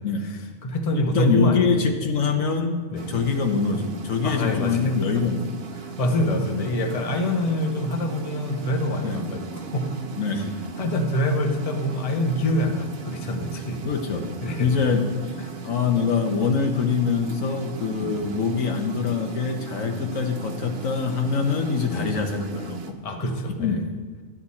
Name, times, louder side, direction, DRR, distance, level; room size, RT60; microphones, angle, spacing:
voice 1, 0.2-2.0 2.9-3.1 4.2-5.3 5.8-9.9 10.8-13.8 14.4-14.7 15.4-15.6 18.0-18.2 21.9-22.1 23.0-23.8, left 1 dB, 30° left, 3 dB, 1.0 m, -26 dB
voice 2, 0.9-2.8 3.1-5.5 9.0-9.2 10.2-10.6 13.8-14.3 14.6-15.3 15.6-23.0 23.6-23.9, left 5 dB, 75° left, 4 dB, 1.4 m, -24 dB
sound 1, 2.9-22.9, right 6 dB, 50° right, 1.0 m, -38 dB
12.5 x 9.8 x 4.2 m, 1.4 s
omnidirectional pair, 1.4 m